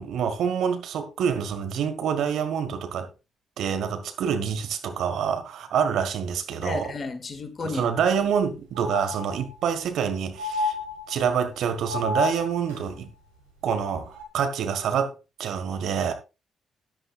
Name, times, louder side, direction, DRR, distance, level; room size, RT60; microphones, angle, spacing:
voice 1, 0.0-3.1 3.6-6.9 7.6-10.8 11.1-13.1 13.6-15.1 15.4-16.1, right 7 dB, 65° right, 1.6 m, -26 dB
voice 2, 6.6-7.8, left 4 dB, 40° left, 1.9 m, -32 dB
sound 1, 7.8-7.9 8.2-8.3 8.8-9.7 10.4-11.4 11.9-12.8 14.1-14.2, left 3 dB, 85° right, 2.5 m, -31 dB
14.0 x 11.0 x 2.4 m
hypercardioid pair, 40°, 0 cm